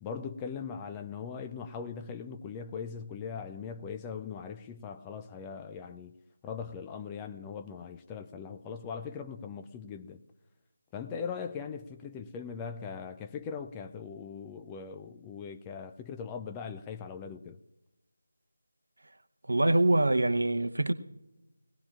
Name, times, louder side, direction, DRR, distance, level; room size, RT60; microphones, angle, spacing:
voice 1, 0.0-6.2 6.4-10.2 10.9-17.6, left 6 dB, 10° left, 0.4 m, -40 dB
voice 2, 19.5-20.9, right 2 dB, 70° right, 0.8 m, -24 dB
21.0 x 17.5 x 2.5 m
figure-of-eight pair, 160°, 0 cm